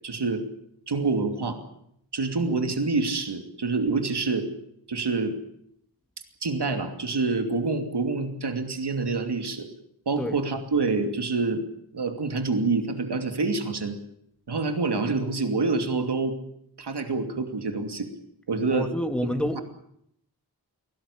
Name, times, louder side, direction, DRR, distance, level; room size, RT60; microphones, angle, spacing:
voice 1, 0.0-0.4 0.9-1.6 2.1-4.5 4.9-5.3 6.4-9.7 10.1-11.6 11.9-14.0 14.5-16.4 16.8-18.1 18.5-18.9, right 3 dB, 85° right, 6 dB, 2.8 m, -26 dB
voice 2, 18.7-19.6, left 1 dB, 5° left, 6 dB, 2.1 m, -28 dB
23.5 x 18.0 x 8.5 m, 0.72 s
wide cardioid pair, 90°, 40 cm